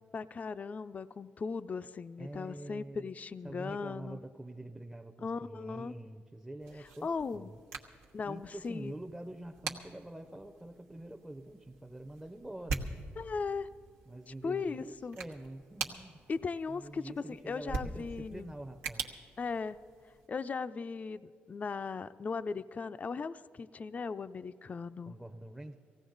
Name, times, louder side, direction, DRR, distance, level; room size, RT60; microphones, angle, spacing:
voice 1, 0.1-4.2 5.2-5.9 6.8-7.5 8.1-8.9 13.2-13.7 14.3-15.2 16.3-18.5 19.4-19.8 20.3-25.1, left 5 dB, 35° left, 12 dB, 0.4 m, -38 dB
voice 2, 2.2-3.1 3.4-7.6 8.2-12.9 14.1-16.1 16.7-19.1 25.1-25.8, right 1 dB, 10° right, 5 dB, 0.6 m, -46 dB
sound 1, 6.6-20.3, right 4 dB, 90° right, 1.1 m, -44 dB
18.5 x 15.5 x 3.9 m, 2.2 s
cardioid pair, 80°, 4 cm